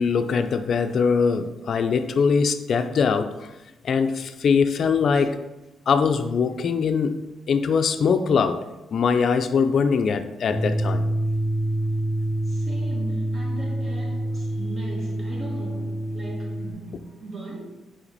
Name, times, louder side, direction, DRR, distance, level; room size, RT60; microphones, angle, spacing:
voice 1, 0.0-3.5 3.8-5.4 5.9-8.6 8.9-11.0, left 5 dB, 55° left, 0.4 m, -22 dB
sound 1, 10.5-16.7, right 1 dB, 20° right, 1.1 m, -26 dB
voice 2, 12.5-17.6, right 1 dB, 45° right, 2.2 m, -38 dB
5.9 x 5.0 x 4.1 m
cardioid pair, 105°, 0 cm